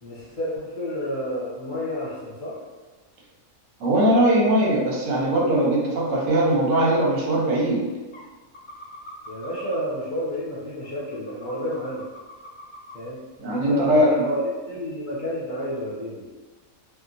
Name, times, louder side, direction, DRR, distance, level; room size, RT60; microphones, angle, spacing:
voice 1, 0.0-2.6 9.3-12.0 12.9-13.2 13.4-16.2, equal, 45° left, -8 dB, 0.8 m, -30 dB
voice 2, 3.8-7.9 13.4-14.3, right 1 dB, 70° right, -3 dB, 1.1 m, -20 dB
sound 1, 7.4-7.5 8.1-8.3 8.5-9.8 10.3-10.4 10.8-12.9 13.4-13.5 13.8-13.9, equal, 85° left, 0.4 m, -43 dB
2.8 x 2.4 x 2.5 m, 1.2 s
omnidirectional pair, 1.4 m